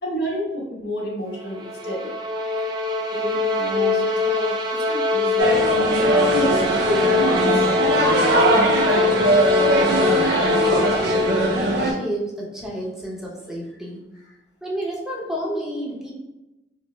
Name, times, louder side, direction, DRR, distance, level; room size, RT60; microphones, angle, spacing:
voice 1, 0.0-2.1 3.1-5.5 6.1-7.7, equal, 70° left, -3 dB, 1.2 m, -30 dB
sound 1, 1.4-11.9, left 3 dB, 25° right, 0.4 m, -23 dB
sound 2, 5.4-11.9, right 2 dB, 65° right, 0.6 m, -20 dB
voice 2, 9.7-14.0 14.6-16.1, right 1 dB, 5° right, -3 dB, 0.7 m, -30 dB
5.1 x 2.1 x 3.1 m, 0.99 s
head